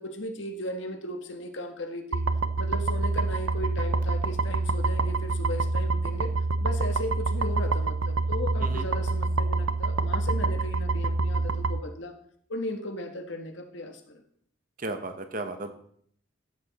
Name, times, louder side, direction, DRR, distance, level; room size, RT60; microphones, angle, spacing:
voice 1, 0.0-2.2 2.6-6.3 6.6-12.1 12.5-14.2, left 1 dB, 65° left, 5 dB, 1.5 m, -36 dB
sound 1, 2.1-11.8, right 3 dB, 80° right, 0.6 m, -27 dB
voice 2, 14.8-15.7, right 2 dB, 40° right, 7 dB, 1.1 m, -34 dB
13.0 x 8.3 x 4.2 m, 0.62 s
head